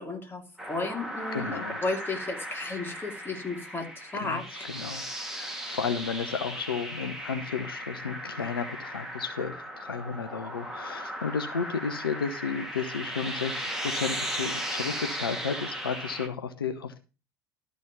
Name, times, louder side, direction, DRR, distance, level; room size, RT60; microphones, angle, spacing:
voice 1, 0.0-4.6, left 3 dB, 20° left, 3 dB, 2.6 m, -34 dB
sound 1, 0.6-16.3, equal, 5° right, 2.4 m, -37 dB
voice 2, 1.3-1.8 4.1-4.4 4.7-17.0, left 6 dB, 85° left, 8 dB, 0.8 m, -33 dB
12.5 x 4.2 x 6.9 m, 0.33 s
figure-of-eight pair, 70°, 12 cm